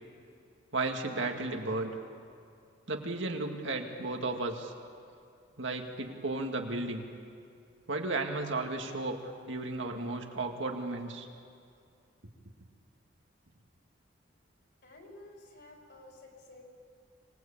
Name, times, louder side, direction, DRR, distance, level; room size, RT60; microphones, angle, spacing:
voice 1, 0.7-2.0 2.9-4.7 5.6-7.0 7.9-9.2 9.5-11.3 12.2-12.3, right 2 dB, 85° right, 3 dB, 2.2 m, -34 dB
voice 2, 14.8-16.6, left 2 dB, 60° left, 0 dB, 5.0 m, -52 dB
26.0 x 18.5 x 8.7 m, 2.4 s
head